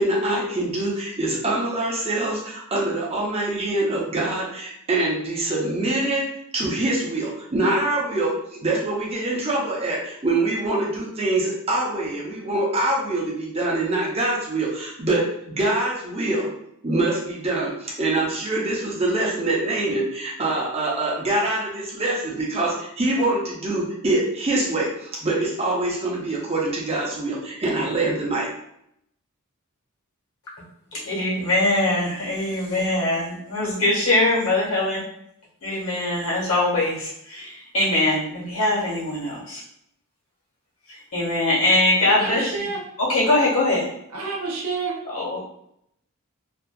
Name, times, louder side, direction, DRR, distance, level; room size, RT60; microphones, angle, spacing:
voice 1, 0.0-6.3 6.5-16.5 16.8-28.5, right 2 dB, 25° right, -3 dB, 0.5 m, -24 dB
voice 2, 30.9-35.0 35.6-39.6 40.9-42.7 43.0-43.9 45.1-45.4, left 2 dB, 65° left, -6 dB, 1.2 m, -22 dB
voice 3, 42.0-42.9 44.1-45.0, right 4 dB, 80° right, -2 dB, 0.7 m, -29 dB
2.5 x 2.3 x 2.2 m, 0.75 s
head